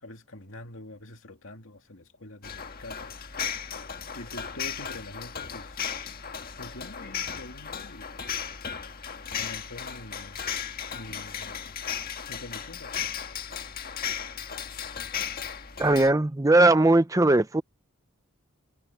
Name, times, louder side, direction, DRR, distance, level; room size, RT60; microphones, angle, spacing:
voice 1, 0.0-3.2 4.1-6.1 6.5-8.1 9.3-10.5 10.9-11.8 12.3-13.2, left 1 dB, 65° left, 2.6 m, -45 dB
sound 1, 2.4-16.1, left 7 dB, 45° left, 1.6 m, -35 dB
voice 2, 15.8-17.6, right 2 dB, 15° right, 0.6 m, -19 dB
head